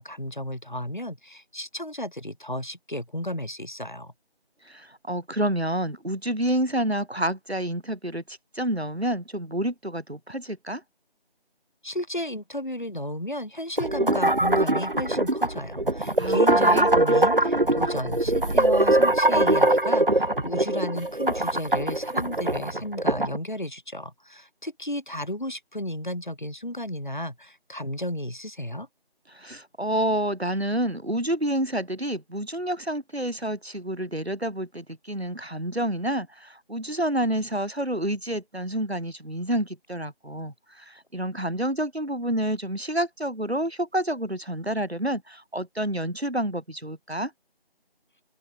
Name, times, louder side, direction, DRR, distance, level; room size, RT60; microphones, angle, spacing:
voice 1, 0.0-4.1 11.8-28.9, left 1 dB, 50° left, 7.1 m, -33 dB
voice 2, 4.6-10.8 16.2-16.9 29.3-47.3, right 1 dB, 80° right, 4.6 m, -29 dB
sound 1, 13.8-23.4, right 1 dB, 55° right, 1.4 m, -22 dB
open air
figure-of-eight pair, 175°, 31 cm